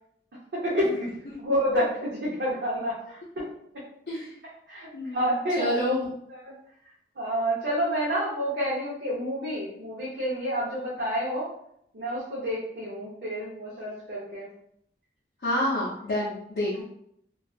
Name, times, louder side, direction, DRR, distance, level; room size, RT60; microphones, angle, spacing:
voice 1, 0.5-1.1 1.4-3.4 4.7-5.7 6.3-6.5 7.2-11.5 11.9-14.5 16.8-16.9, equal, 70° right, -6 dB, 0.6 m, -29 dB
voice 2, 4.9-5.3 5.6-6.0 15.4-16.8, left 1 dB, 65° left, -7 dB, 0.5 m, -28 dB
2.6 x 2.3 x 2.3 m, 0.72 s
head